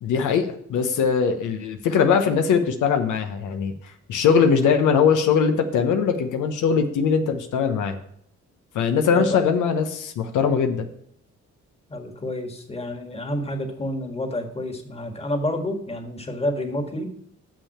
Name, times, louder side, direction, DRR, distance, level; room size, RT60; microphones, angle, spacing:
voice 1, 0.0-7.9 8.7-10.9, left 6 dB, 80° left, 6 dB, 1.0 m, -21 dB
voice 2, 11.9-17.1, left 1 dB, 20° left, 5 dB, 1.7 m, -29 dB
6.7 x 6.1 x 7.2 m, 0.70 s
cardioid pair, 90°, 30 cm